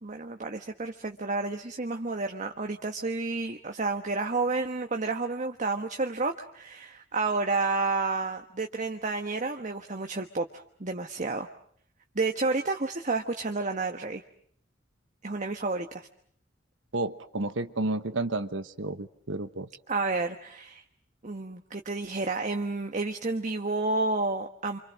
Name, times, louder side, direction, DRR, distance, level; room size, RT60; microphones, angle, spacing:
voice 1, 0.0-11.5 12.1-14.2 15.2-16.1 19.9-20.8 21.2-24.8, right 3 dB, 40° right, 5 dB, 1.3 m, -30 dB
voice 2, 16.9-19.7, right 2 dB, 75° right, 10 dB, 1.2 m, -31 dB
28.5 x 26.5 x 6.3 m, 0.63 s
head